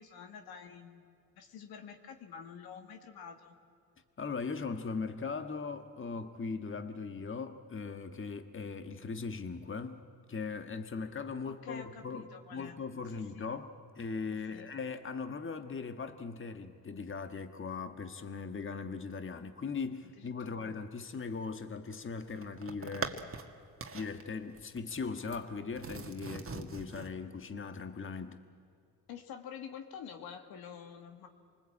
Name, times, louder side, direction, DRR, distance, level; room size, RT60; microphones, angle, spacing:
voice 1, 0.0-3.6 11.4-12.8 13.1-13.5 14.3-14.7 20.0-20.7 29.1-31.3, left 7 dB, 75° left, 5 dB, 2.1 m, -48 dB
voice 2, 4.2-10.0 10.3-23.2 23.9-28.4, left 4 dB, 35° left, 8 dB, 1.6 m, -39 dB
sound 1, 21.9-23.5 23.8-24.2 24.6-25.4 25.8-27.1, right 4 dB, 35° right, 1.9 m, -42 dB
28.0 x 20.0 x 8.6 m, 2.3 s
supercardioid pair, 60°, 37 cm